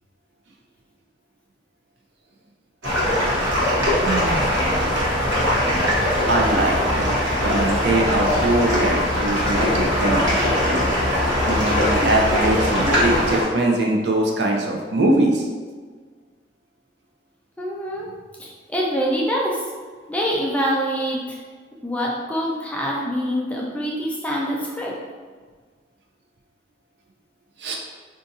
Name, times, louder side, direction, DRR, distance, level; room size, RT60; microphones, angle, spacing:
sound 1, 2.8-13.4, left 1 dB, 85° right, 1.0 m, -21 dB
voice 1, 4.0-5.0 6.3-10.4 11.5-15.4 27.6-27.8, right 2 dB, 65° right, 0 dB, 0.5 m, -22 dB
voice 2, 17.6-18.1 18.4-19.6 20.1-21.4 21.8-25.0, equal, 5° left, -3 dB, 0.3 m, -25 dB
2.6 x 2.5 x 3.9 m, 1.5 s
head